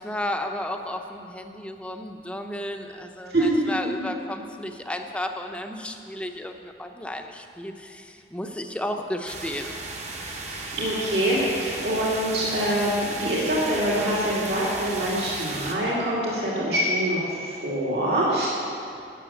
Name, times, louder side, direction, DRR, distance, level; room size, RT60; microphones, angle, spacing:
voice 1, 0.0-9.7, left 1 dB, 5° left, 4 dB, 0.7 m, -33 dB
sound 1, 9.3-15.7, right 3 dB, 40° right, 1.2 m, -35 dB
voice 2, 10.4-18.5, right 1 dB, 65° right, -6 dB, 2.5 m, -25 dB
12.0 x 7.2 x 8.7 m, 2.6 s
head